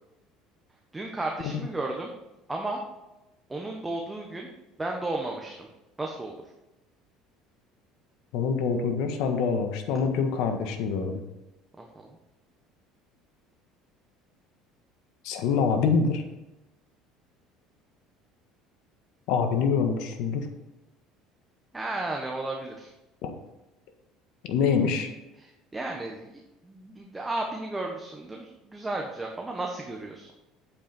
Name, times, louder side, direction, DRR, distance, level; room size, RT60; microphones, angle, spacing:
voice 1, 0.9-2.1 2.5-2.8 3.5-4.5 4.8-5.7 6.0-6.4 11.8-12.1 21.7-22.9 25.4-30.3, right 2 dB, 10° right, 0 dB, 1.2 m, -34 dB
voice 2, 8.3-11.2 15.2-16.2 19.3-20.5 23.2-23.3 24.4-25.1, left 5 dB, 70° left, 5 dB, 1.5 m, -25 dB
8.7 x 8.2 x 4.5 m, 0.98 s
cardioid pair, 125°, 0 cm